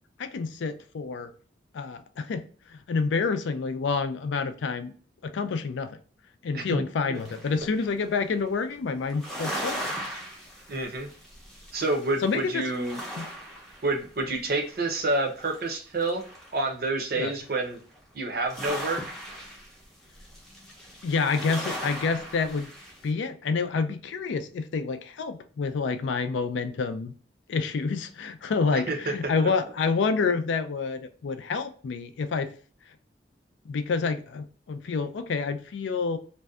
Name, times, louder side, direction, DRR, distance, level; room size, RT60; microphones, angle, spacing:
voice 1, 0.2-1.3 1.7-4.9 5.2-6.0 6.4-9.9 12.2-12.6 13.2-13.3 17.1-17.3 21.0-22.7 23.0-27.1 27.5-32.5 33.7-36.2, left 4 dB, 80° left, 9 dB, 0.4 m, -28 dB
sound 1, 7.1-7.9 9.1-12.4 12.6-14.3 14.6-16.7 17.7-18.0 18.4-23.0, equal, ahead, 0.5 m, -38 dB
voice 2, 10.7-11.1 11.7-13.3 13.8-16.2 16.5-17.8 18.1-19.0 28.7-29.3, right 2 dB, 55° right, 3 dB, 0.6 m, -28 dB
2.5 x 2.1 x 2.3 m, 0.42 s
head